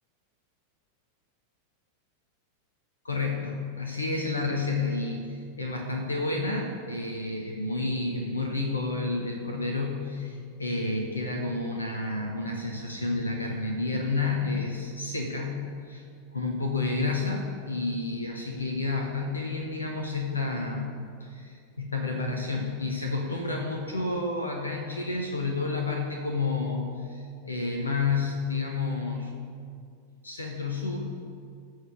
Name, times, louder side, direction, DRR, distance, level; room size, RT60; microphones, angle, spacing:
voice 1, 3.0-16.0 16.3-20.9 21.2-29.3 30.2-31.1, left 3 dB, 75° left, 1 dB, 1.3 m, -30 dB
14.5 x 5.0 x 8.1 m, 2.2 s
figure-of-eight pair, 90°, 0 cm